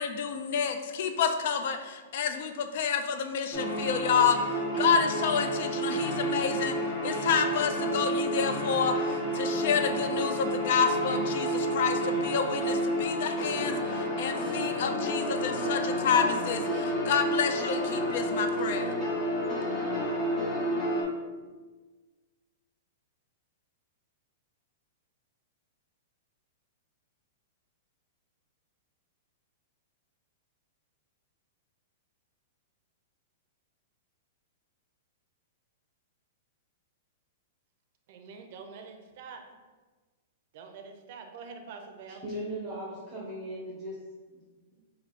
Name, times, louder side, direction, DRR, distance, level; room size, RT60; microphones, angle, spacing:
voice 1, 0.0-6.8 7.0-19.0, left 6 dB, 60° left, 7 dB, 0.4 m, -29 dB
sound 1, 3.5-21.0, equal, 20° left, 0.8 m, -30 dB
voice 2, 38.1-39.4 40.5-42.2, right 5 dB, 50° right, 5 dB, 0.5 m, -45 dB
voice 3, 42.1-44.0 44.3-44.4, right 1 dB, 10° right, -9 dB, 0.9 m, -38 dB
3.2 x 2.6 x 4.0 m, 1.3 s
hypercardioid pair, 150°, 0 cm